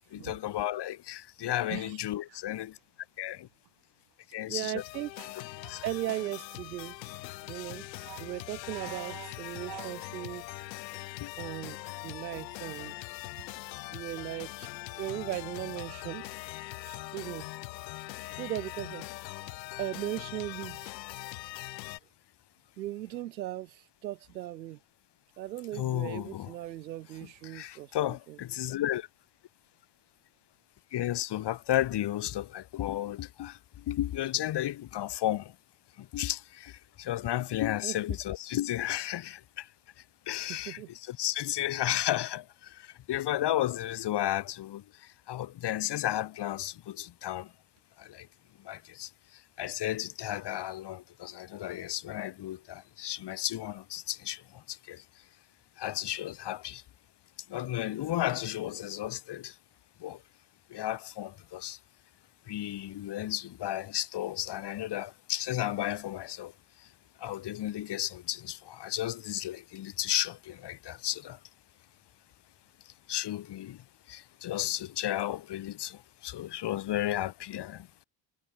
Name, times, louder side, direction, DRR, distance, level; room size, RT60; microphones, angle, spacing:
voice 1, 0.0-2.8 3.2-3.5 4.3-4.8 5.7-5.8 11.2-11.3 25.7-26.5 27.4-29.1 30.9-35.5 36.0-39.7 40.3-40.8 41.1-44.8 45.3-47.5 48.0-48.3 48.6-49.1 49.6-54.4 54.7-55.0 55.8-56.8 57.5-59.5 60.0-60.2 60.7-61.8 62.5-66.5 67.2-71.4 73.1-73.8 74.1-77.9, left 13 dB, 55° left, 1.8 m, -33 dB
voice 2, 4.5-5.3 5.8-7.0 7.5-7.8 8.2-10.4 11.4-12.9 13.9-14.7 15.0-16.3 16.9-17.5 18.4-19.5 19.8-20.9 22.8-24.8 25.4-28.4 37.8-38.0 40.5-40.9, right 14 dB, 90° right, 2.6 m, -38 dB
sound 1, 4.8-22.0, left 19 dB, 85° left, 3.3 m, -42 dB
sound 2, 5.2-10.2, right 12 dB, 60° right, 7.1 m, -50 dB
hypercardioid pair, 55°, 50 cm